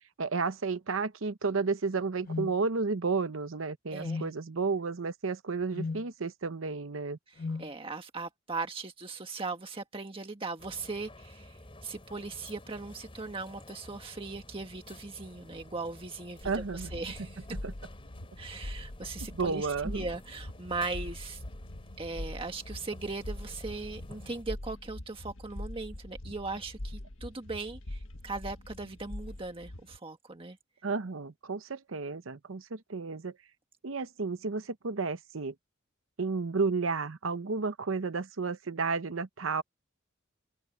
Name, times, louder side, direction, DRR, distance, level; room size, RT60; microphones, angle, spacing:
voice 1, 0.2-7.2 16.4-16.9 17.6-17.7 19.3-20.1 30.8-33.3 33.8-35.5 36.2-39.6, right 4 dB, 80° right, 0.8 m, -32 dB
sound 1, 2.3-2.5 4.0-4.3 5.7-6.0 7.4-7.7, left 3 dB, 45° left, 0.4 m, -35 dB
voice 2, 3.9-4.2 7.3-17.5 18.4-21.4 22.0-30.6, right 3 dB, 25° right, 1.6 m, -39 dB
sound 2, 10.6-24.4, left 1 dB, 25° left, 4.0 m, -51 dB
sound 3, 16.4-30.0, left 1 dB, 75° left, 1.5 m, -43 dB
open air
head